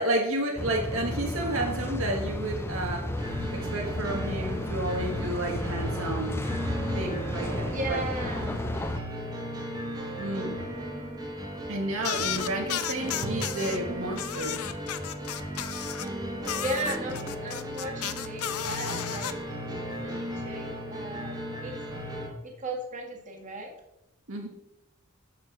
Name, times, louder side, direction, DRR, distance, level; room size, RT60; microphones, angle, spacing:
voice 1, 0.0-3.1 3.5-6.5 6.9-8.0 10.1-10.5 11.7-14.6 24.3-24.5, right 1 dB, 60° right, 1 dB, 1.4 m, -31 dB
sound 1, 0.6-9.0, left 1 dB, 10° left, 0.6 m, -33 dB
sound 2, 3.2-22.3, equal, 15° right, 1.6 m, -36 dB
voice 2, 7.7-8.6 16.6-19.3 20.0-21.8 22.4-23.7, right 1 dB, 35° right, 0 dB, 1.7 m, -36 dB
sound 3, 12.0-13.8 14.2-16.1 16.4-19.3, left 10 dB, 75° left, 0.6 m, -33 dB
7.1 x 6.3 x 6.1 m, 0.90 s
head